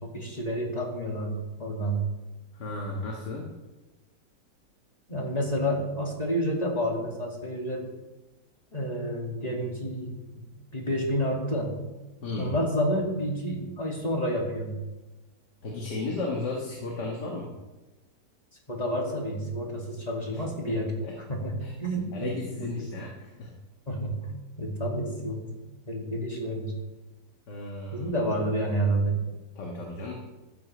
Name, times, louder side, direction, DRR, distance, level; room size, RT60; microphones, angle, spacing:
voice 1, 0.0-2.1 5.1-7.9 8.7-10.4 10.7-11.7 12.4-14.8 18.7-21.0 21.3-22.7 23.9-24.3 24.6-25.5 25.9-26.8 27.9-29.2, equal, 20° left, -1 dB, 2.3 m, -29 dB
voice 2, 2.5-3.5 12.2-12.5 15.6-17.5 20.3-20.8 21.0-21.2 21.6-21.7 22.1-23.5 27.5-28.1 29.6-30.1, left 2 dB, 75° left, -1 dB, 2.3 m, -34 dB
14.5 x 12.5 x 3.3 m, 1.1 s
omnidirectional pair, 1.8 m